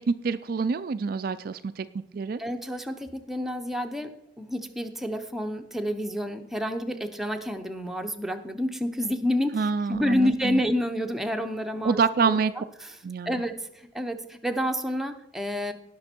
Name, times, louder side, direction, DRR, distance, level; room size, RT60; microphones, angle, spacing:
voice 1, 0.1-1.9 2.1-2.4 9.5-10.6 11.8-12.5 13.0-13.4, right 5 dB, 50° right, 11 dB, 0.3 m, -26 dB
voice 2, 2.4-12.0 12.3-12.4 13.3-13.5 13.9-15.7, equal, ahead, 5 dB, 0.7 m, -29 dB
18.0 x 6.0 x 4.4 m, 0.80 s
head